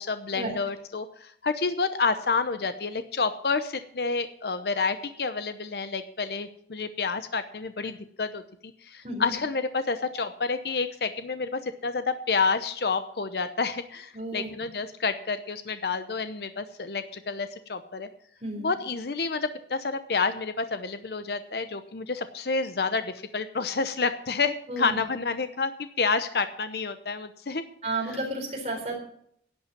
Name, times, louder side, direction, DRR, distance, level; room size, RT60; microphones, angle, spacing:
voice 1, 0.0-18.1 18.6-27.6, left 4 dB, 65° left, 10 dB, 0.8 m, -29 dB
voice 2, 9.0-9.4 14.1-14.5 18.4-18.7 24.7-25.0 27.8-28.9, right 2 dB, 35° right, 1 dB, 4.0 m, -32 dB
11.0 x 8.6 x 7.1 m, 0.67 s
head